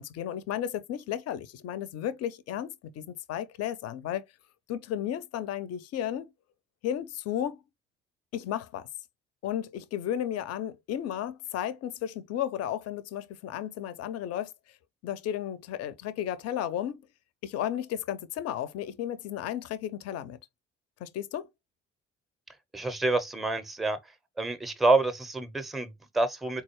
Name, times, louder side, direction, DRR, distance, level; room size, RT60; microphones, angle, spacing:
voice 1, 0.0-4.2 4.7-6.3 6.8-7.6 8.3-8.9 9.4-14.5 15.0-17.0 17.4-20.4 21.0-21.5, left 10 dB, 45° left, 0.5 m, -33 dB
voice 2, 22.7-24.0 24.4-26.6, right 2 dB, ahead, 0.5 m, -27 dB
3.9 x 2.3 x 2.9 m
figure-of-eight pair, 40°, 36 cm